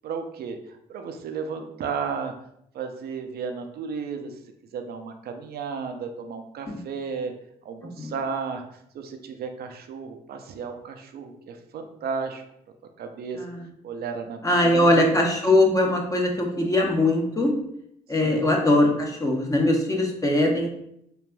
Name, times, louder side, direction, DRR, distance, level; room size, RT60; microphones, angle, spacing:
voice 1, 0.0-2.3 2.7-4.3 4.7-7.4 7.6-8.6 8.9-12.4 13.0-13.4 13.8-15.1 18.2-18.4, right 5 dB, 55° right, 6 dB, 0.5 m, -33 dB
voice 2, 14.4-17.5 18.1-20.7, left 1 dB, 15° left, 0 dB, 0.8 m, -21 dB
3.1 x 2.4 x 2.2 m, 0.74 s
hypercardioid pair, 55°, 19 cm